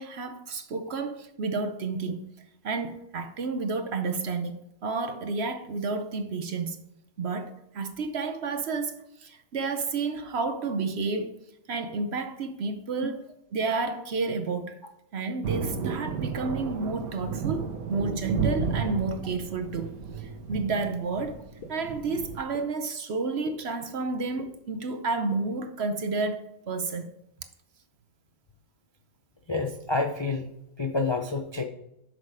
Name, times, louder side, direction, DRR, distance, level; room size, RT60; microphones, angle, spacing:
voice 1, 0.0-2.3 2.6-6.8 7.2-11.3 11.7-14.8 15.1-21.4 21.7-27.1, right 4 dB, 55° right, 0.8 m, -31 dB
Thunder, 15.4-22.4, right 5 dB, 80° right, 1.4 m, -33 dB
sound 1, 17.0-17.1 17.9-18.0 18.8-18.9 19.8-19.9 20.7-20.8 21.6-21.7 22.5-22.6 23.5-23.6 24.4-24.5 25.3-25.4, left 4 dB, 80° left, 1.5 m, -42 dB
voice 2, 29.5-31.6, left 3 dB, 45° left, 0.3 m, -29 dB
8.0 x 6.4 x 4.9 m
omnidirectional pair, 1.5 m